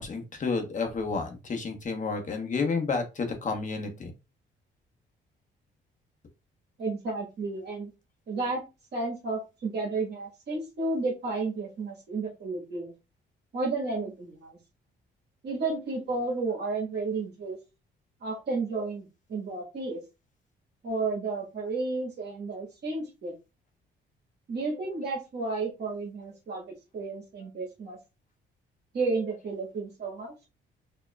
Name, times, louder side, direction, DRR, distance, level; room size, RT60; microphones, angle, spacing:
voice 1, 0.0-4.1, left 4 dB, 40° left, 4 dB, 1.0 m, -30 dB
voice 2, 6.8-7.9 8.3-8.6 8.9-12.9 13.5-14.6 15.4-17.6 18.2-20.0 20.8-23.3 24.5-28.0 28.9-30.3, right 3 dB, 55° right, -1 dB, 1.5 m, -32 dB
4.6 x 2.8 x 2.3 m, 0.27 s
cardioid pair, 90°, 20 cm